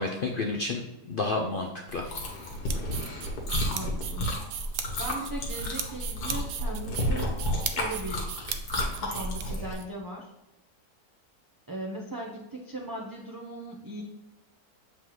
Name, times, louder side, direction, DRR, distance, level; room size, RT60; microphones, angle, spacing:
voice 1, 0.0-2.2, left 3 dB, 65° left, 2 dB, 0.5 m, -31 dB
Chewing mastication, 1.9-9.7, left 1 dB, 85° left, 1.8 m, -32 dB
sound 1, 2.4-9.8, right 9 dB, 75° right, 1.1 m, -37 dB
voice 2, 3.7-4.3 5.0-7.3 7.7-8.3 9.0-10.3 11.7-14.0, right 1 dB, 25° right, -2 dB, 0.5 m, -38 dB
7.4 x 4.4 x 3.1 m, 0.95 s
omnidirectional pair, 1.6 m